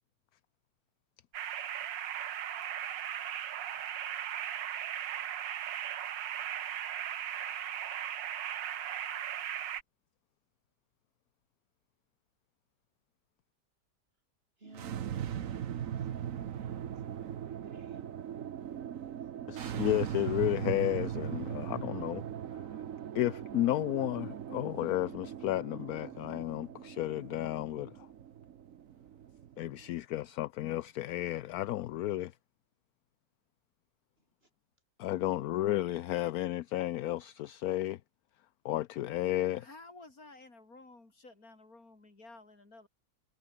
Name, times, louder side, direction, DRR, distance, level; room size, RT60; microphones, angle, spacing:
sound 1, 1.3-9.8, right 10 dB, 85° right, 1.8 m, -37 dB
voice 1, 14.6-15.8 16.1-18.0 35.1-35.5, right 2 dB, 35° right, 3.0 m, -58 dB
sound 2, 14.6-29.9, right 9 dB, 55° right, 1.2 m, -39 dB
voice 2, 19.5-22.2 23.1-27.9 29.6-32.3 35.0-38.0 38.6-39.7, left 14 dB, 65° left, 1.0 m, -32 dB
voice 3, 39.6-42.9, left 2 dB, 50° left, 5.1 m, -53 dB
omnidirectional pair, 1.9 m